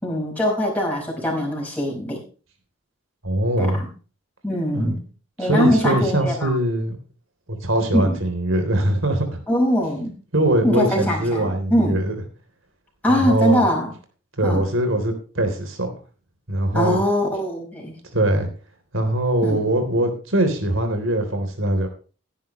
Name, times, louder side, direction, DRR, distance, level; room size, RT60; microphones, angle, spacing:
voice 1, 0.0-2.2 3.6-3.9 4.4-5.0 5.4-6.5 7.9-8.2 9.5-10.1 10.6-12.0 13.0-13.9 14.4-14.7 16.7-17.9 19.4-19.6, left 1 dB, 5° left, -2 dB, 5.4 m, -22 dB
voice 2, 3.2-3.8 4.7-5.0 5.4-7.0 7.5-9.4 10.3-12.1 13.1-13.6 14.4-15.9 16.5-17.0 18.1-18.5 18.9-21.9, right 1 dB, 65° right, 6 dB, 3.6 m, -22 dB
16.0 x 10.5 x 3.2 m, 0.36 s
head